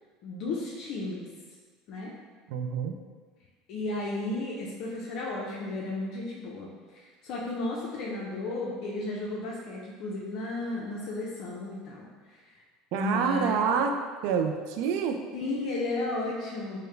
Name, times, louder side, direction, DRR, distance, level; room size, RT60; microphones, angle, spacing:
voice 1, 0.2-1.3 1.9-2.1 3.7-6.7 6.9-12.5 12.9-13.8 15.3-16.8, left 2 dB, 60° left, -4 dB, 0.6 m, -34 dB
voice 2, 2.5-3.0 12.9-14.0 14.2-15.2, right 6 dB, 70° right, 5 dB, 0.4 m, -27 dB
4.6 x 2.1 x 3.2 m, 1.5 s
supercardioid pair, 115°, 0 cm